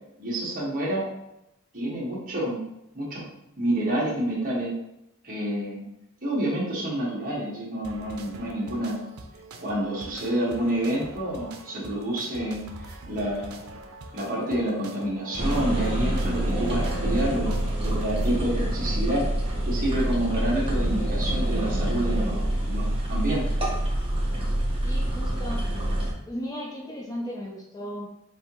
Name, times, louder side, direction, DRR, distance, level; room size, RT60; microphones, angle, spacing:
voice 1, 0.2-1.1 1.7-2.6 2.9-3.3 3.6-4.7 5.2-5.8 6.2-9.0 9.6-13.7 14.1-17.5 17.8-19.2 19.6-23.4, right 1 dB, 40° right, -5 dB, 1.6 m, -28 dB
sound 1, 7.8-18.5, right 2 dB, 85° right, 0.6 m, -44 dB
sound 2, 15.4-26.1, right 1 dB, 25° right, 1.0 m, -26 dB
voice 2, 24.8-25.7 26.2-28.1, equal, 15° left, -1 dB, 0.5 m, -35 dB
5.4 x 2.9 x 3.0 m, 0.83 s
head